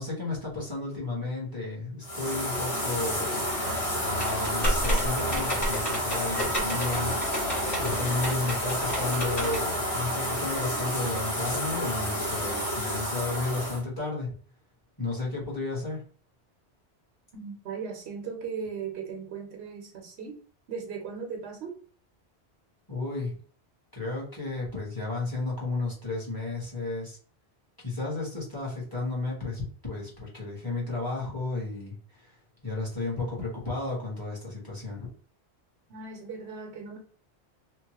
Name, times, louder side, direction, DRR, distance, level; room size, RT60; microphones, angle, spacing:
voice 1, 0.0-14.3 15.0-16.0 22.9-23.4 23.9-27.2 27.8-32.0 32.2-32.3 32.6-35.1, left 3 dB, 20° left, 1.1 m, -33 dB
sound 1, 2.0-13.8, equal, 80° left, 1.5 m, -30 dB
sound 2, 4.2-9.6, equal, 35° left, 1.6 m, -32 dB
voice 2, 17.3-20.4 20.7-21.8 35.9-37.0, right 6 dB, 70° right, 0.9 m, -37 dB
2.9 x 2.1 x 2.9 m
omnidirectional pair, 1.1 m